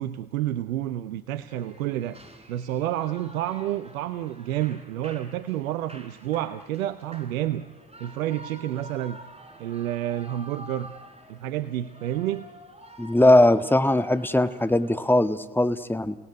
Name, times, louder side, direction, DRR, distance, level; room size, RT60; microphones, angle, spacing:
voice 1, 0.0-2.2 2.5-7.7 8.0-9.2 9.6-10.9 11.3-12.5, right 12 dB, 90° right, 13 dB, 0.8 m, -29 dB
Shout / Cheering, 1.4-15.3, right 1 dB, 15° right, 4.0 m, -48 dB
voice 2, 13.0-16.2, left 1 dB, 5° left, 10 dB, 1.5 m, -20 dB
28.5 x 18.0 x 9.6 m, 1.2 s
hypercardioid pair, 50°, 40 cm